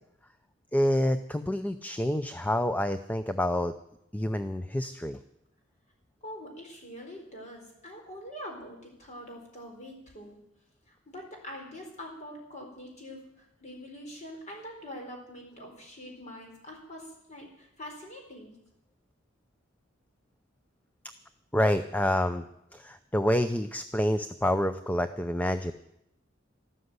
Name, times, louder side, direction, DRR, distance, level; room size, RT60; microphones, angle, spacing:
voice 1, 0.7-3.7 4.1-5.2 21.5-22.4 22.7-25.7, left 1 dB, 10° left, 10 dB, 0.5 m, -27 dB
voice 2, 6.2-10.4 10.9-18.5, equal, 35° left, 1 dB, 4.6 m, -44 dB
13.0 x 12.5 x 8.1 m, 0.80 s
head